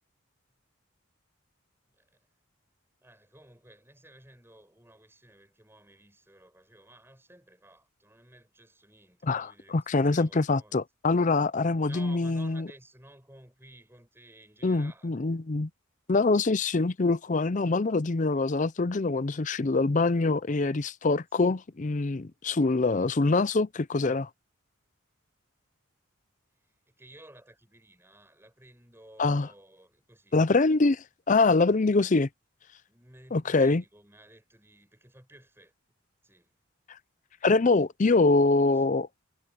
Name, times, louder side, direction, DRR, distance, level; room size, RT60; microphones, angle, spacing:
voice 1, 1.9-2.2 3.0-10.8 11.9-15.4 21.3-21.4 26.9-30.4 32.9-35.7 36.2-36.5 37.5-37.9 38.7-38.9, right 1 dB, 10° right, 7.8 m, -55 dB
voice 2, 9.2-12.7 14.6-15.7 16.1-24.3 29.2-29.5 30.3-32.3 33.3-33.8 37.4-39.1, left 3 dB, 35° left, 0.5 m, -24 dB
head